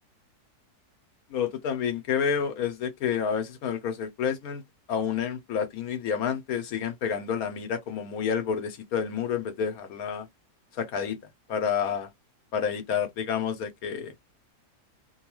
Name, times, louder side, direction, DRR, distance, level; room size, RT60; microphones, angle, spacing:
voice 1, 1.3-4.6 4.9-10.3 10.8-11.2 11.5-12.1 12.5-14.1, left 7 dB, 70° left, 1.1 m, -29 dB
2.9 x 2.3 x 2.9 m
omnidirectional pair, 1.7 m